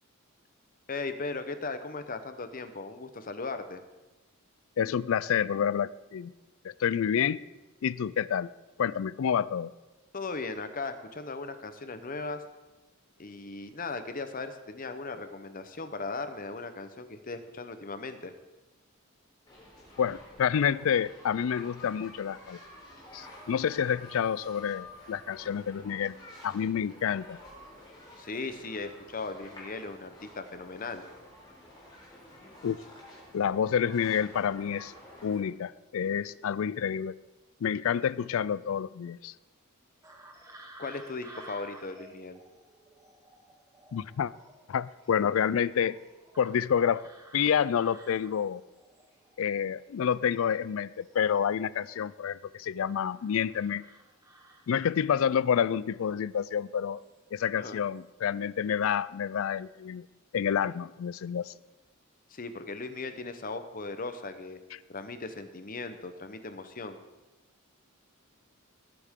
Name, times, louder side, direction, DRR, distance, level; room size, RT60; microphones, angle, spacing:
voice 1, 0.9-3.8 10.1-12.4 13.2-18.3 28.2-31.0 40.8-42.4 57.6-57.8 62.3-64.6 64.9-67.0, left 3 dB, 40° left, 9 dB, 0.8 m, -38 dB
voice 2, 4.8-6.3 6.6-7.4 7.8-8.5 8.8-9.7 20.0-22.6 23.1-26.1 26.4-27.4 32.6-32.8 33.3-34.9 35.2-37.1 37.6-39.3 43.9-44.3 44.7-46.0 46.4-47.1 47.3-48.6 49.4-53.8 54.7-57.0 57.3-60.1 60.3-61.5, left 8 dB, 65° left, 19 dB, 0.4 m, -28 dB
sound 1, 19.5-35.4, left 1 dB, 20° left, 3.8 m, -50 dB
sound 2, 40.0-50.0 50.3-52.3 52.8-55.1 56.3-56.5 57.0-57.5 57.7-58.0, right 1 dB, 15° right, 1.4 m, -54 dB
19.0 x 8.3 x 3.7 m, 1.1 s
head